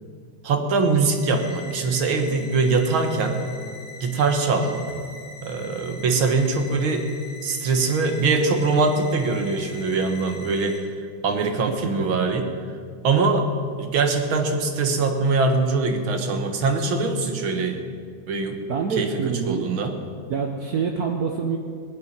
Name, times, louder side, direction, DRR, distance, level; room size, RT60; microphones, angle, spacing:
voice 1, 0.4-3.4 4.0-4.8 5.4-7.1 7.4-10.9 11.2-12.5 13.0-13.5 13.8-17.8 18.3-18.6 19.0-19.1 19.5-19.9, right 3 dB, 85° right, 5 dB, 2.2 m, -22 dB
sound 1, 1.1-10.8, left 3 dB, 25° right, 3.9 m, -42 dB
voice 2, 18.7-19.7 20.3-21.6, right 6 dB, 55° right, 3 dB, 1.3 m, -26 dB
19.0 x 6.9 x 9.5 m, 2.1 s
omnidirectional pair, 2.1 m